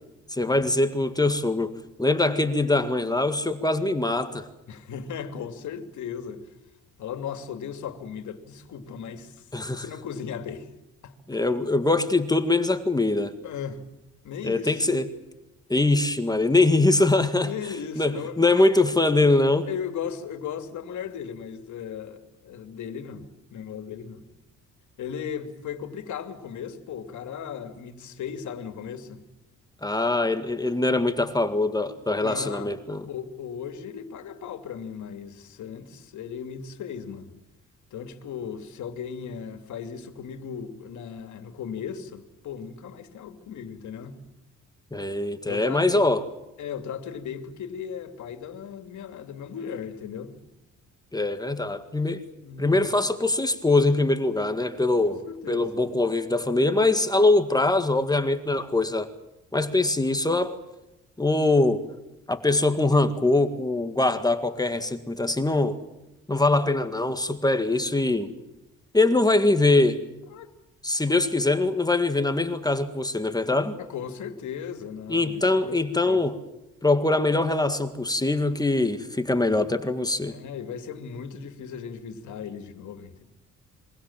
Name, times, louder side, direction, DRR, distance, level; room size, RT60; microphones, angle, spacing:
voice 1, 0.3-1.7 2.0-4.5 9.5-9.9 11.3-13.3 14.4-15.1 15.7-17.5 18.0-19.7 29.8-33.1 44.9-46.2 51.1-52.2 52.6-55.2 55.5-59.1 59.5-60.6 61.2-61.8 62.3-65.8 66.3-68.3 68.9-70.0 70.8-73.8 75.1-76.4 76.8-80.4, left 2 dB, 15° left, 1.9 m, -23 dB
voice 2, 4.7-6.5 7.0-9.5 9.7-10.7 11.0-11.1 13.4-13.8 14.2-14.8 17.4-18.6 19.6-24.2 25.0-29.2 32.1-32.7 33.1-37.3 37.9-44.2 45.5-46.1 46.6-50.3 52.4-52.8 55.0-55.8 70.3-70.5 71.1-71.2 73.8-75.8 76.1-76.2 80.3-83.2, left 7 dB, 75° left, 2.8 m, -37 dB
27.5 x 23.5 x 7.4 m
cardioid pair, 90°, 30 cm